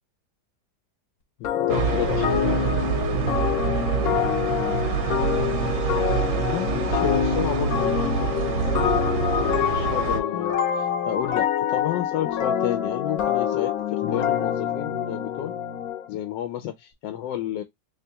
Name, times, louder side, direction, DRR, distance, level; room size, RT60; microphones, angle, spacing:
voice 1, 1.4-2.8 4.1-4.3 6.3-15.6 16.1-17.6, left 11 dB, 85° left, 1.3 m, -32 dB
sound 1, 1.4-16.1, left 9 dB, 65° left, 1.0 m, -26 dB
sound 2, 1.7-10.2, right 7 dB, 75° right, 1.4 m, -26 dB
3.4 x 3.4 x 2.7 m
omnidirectional pair, 1.9 m